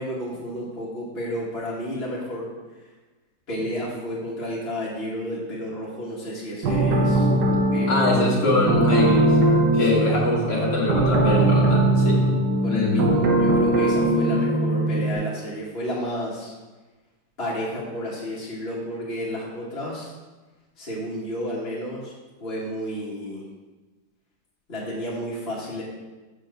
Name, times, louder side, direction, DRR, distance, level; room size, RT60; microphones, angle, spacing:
voice 1, 0.0-2.5 2.8-2.9 3.5-7.3 7.7-8.0 9.8-10.1 12.6-16.5 17.4-20.1 20.8-22.1 22.4-23.4 24.7-25.8, equal, 35° left, -7 dB, 1.8 m, -31 dB
sound 1, 6.6-15.1, right 1 dB, 80° right, 1.6 m, -20 dB
voice 2, 7.9-9.3 9.7-12.3 12.7-13.2, left 2 dB, 85° left, -5 dB, 2.2 m, -23 dB
7.0 x 4.6 x 6.6 m, 1.2 s
omnidirectional pair, 1.8 m